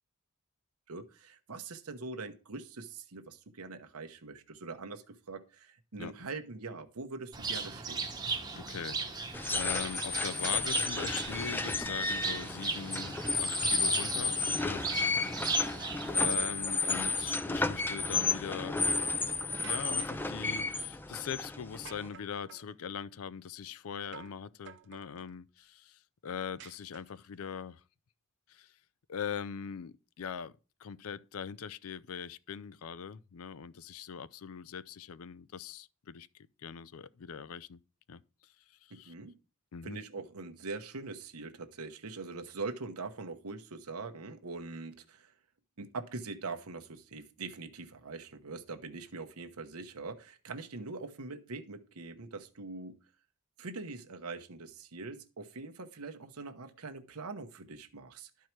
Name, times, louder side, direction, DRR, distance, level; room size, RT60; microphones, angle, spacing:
voice 1, 0.9-8.1 15.1-15.2 38.9-39.3 39.8-45.3 45.8-53.0 53.6-58.3, right 3 dB, 85° right, 0.9 m, -43 dB
Bird, 7.3-16.3, right 4 dB, 15° right, 0.9 m, -37 dB
voice 2, 8.5-14.8 15.1-15.8 16.1-27.8 28.5-28.7 29.1-30.5 30.8-36.3 36.6-37.8 38.1-38.2 38.8-39.1 39.7-40.0, left 7 dB, 75° left, 0.5 m, -41 dB
sound 1, 9.3-22.1, left 3 dB, 10° left, 0.3 m, -32 dB
sound 2, 19.6-20.3 21.9-22.7 24.1-24.4 24.7-25.3 26.6-27.4, right 8 dB, 55° right, 0.7 m, -51 dB
12.0 x 4.7 x 4.5 m
head